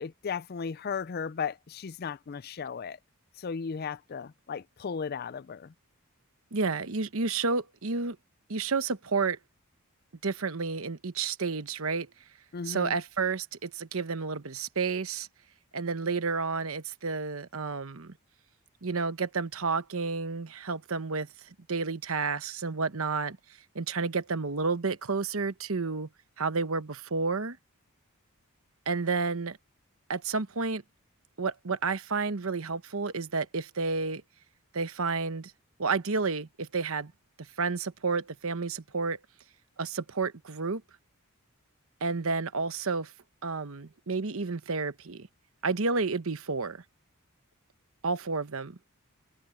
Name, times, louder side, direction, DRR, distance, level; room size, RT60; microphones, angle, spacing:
voice 1, 0.0-3.0 3.4-5.7 12.5-13.0, left 6 dB, 45° left, 0.4 m, -35 dB
voice 2, 6.5-8.2 8.5-9.4 10.2-12.1 12.6-15.3 15.7-18.1 18.8-21.3 21.7-23.4 23.7-26.1 26.4-27.6 28.9-29.6 30.1-30.8 31.4-34.2 34.7-35.5 35.8-37.1 37.6-39.2 39.8-40.8 42.0-43.1 43.4-45.3 45.6-46.8 48.0-48.9, right 4 dB, 65° right, 1.0 m, -30 dB
head